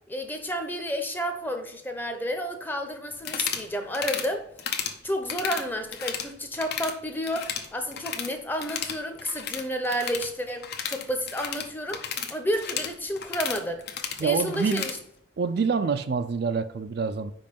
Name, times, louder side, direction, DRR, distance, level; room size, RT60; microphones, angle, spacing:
voice 1, 0.1-4.5 5.0-13.8 14.2-15.0, equal, 10° left, 0.7 m, -31 dB
sound 1, 3.2-3.7 3.9-4.3 4.6-5.0 5.3-6.3 6.5-6.9 7.2-8.3 8.6-15.0, left 7 dB, 60° left, 0.7 m, -33 dB
voice 2, 14.2-14.9 15.4-17.3, right 5 dB, 60° right, 0.4 m, -26 dB
5.3 x 4.8 x 5.2 m
head